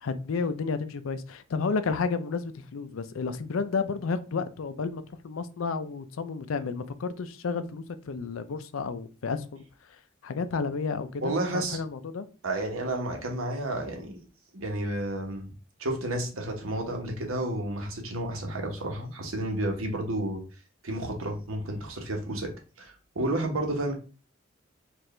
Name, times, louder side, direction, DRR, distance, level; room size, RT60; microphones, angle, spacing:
voice 1, 0.0-12.3, left 4 dB, 80° left, 0.4 m, -32 dB
voice 2, 11.2-11.8 12.4-14.1 14.5-15.5 15.8-20.4 20.8-22.5 22.8-23.9, right 1 dB, 90° right, 1.1 m, -31 dB
4.5 x 2.5 x 3.2 m
head